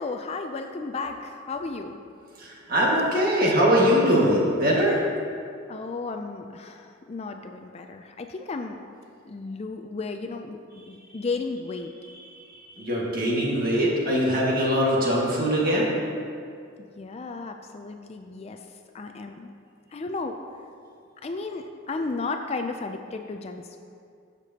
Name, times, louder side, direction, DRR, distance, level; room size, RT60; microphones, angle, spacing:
voice 1, 0.0-2.0 3.4-3.5 5.7-8.8 9.2-11.9 16.8-18.7 18.9-19.5 19.9-20.4 21.2-23.8, left 3 dB, 30° left, 5 dB, 0.3 m, -34 dB
voice 2, 2.4-5.1 12.5-15.9, equal, 45° right, -4 dB, 1.8 m, -22 dB
14.0 x 6.7 x 2.8 m, 2.4 s
head